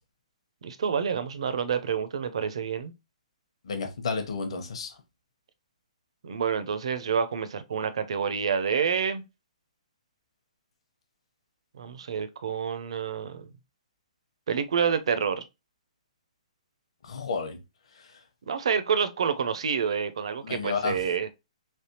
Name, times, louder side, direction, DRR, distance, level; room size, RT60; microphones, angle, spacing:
voice 1, 0.6-2.9 6.2-9.2 11.7-13.5 14.5-15.4 18.5-21.3, right 7 dB, 45° right, 0.5 m, -28 dB
voice 2, 3.7-5.0 17.0-17.6 20.4-21.0, left 5 dB, 50° left, 0.8 m, -31 dB
3.3 x 3.1 x 2.7 m
hypercardioid pair, 180°, 4 cm